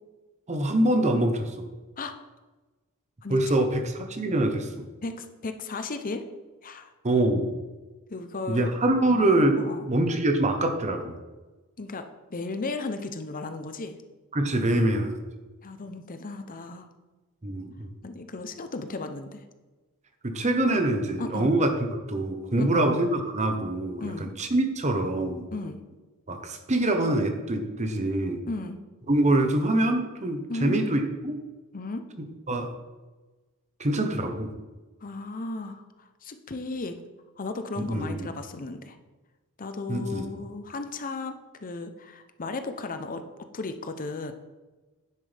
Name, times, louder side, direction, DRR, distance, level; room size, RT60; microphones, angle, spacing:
voice 1, 0.5-1.7 3.3-4.9 7.0-7.5 8.5-9.6 9.9-11.2 14.3-15.1 17.4-17.9 20.2-25.4 26.3-28.4 29.1-31.4 32.5-32.7 33.8-34.5 37.9-38.3 39.9-40.3, right 1 dB, 30° right, 6 dB, 1.0 m, -25 dB
voice 2, 5.0-6.2 6.6-6.9 8.1-8.7 9.6-9.9 11.8-14.0 15.6-16.9 18.0-19.5 21.2-21.6 22.6-23.0 24.0-24.3 25.5-25.8 28.5-28.8 30.5-30.8 31.7-32.1 35.0-37.0 37.4-39.0 39.6-43.2 43.5-44.3, left 3 dB, 40° left, 8 dB, 0.7 m, -35 dB
9.9 x 7.7 x 3.4 m, 1.2 s
head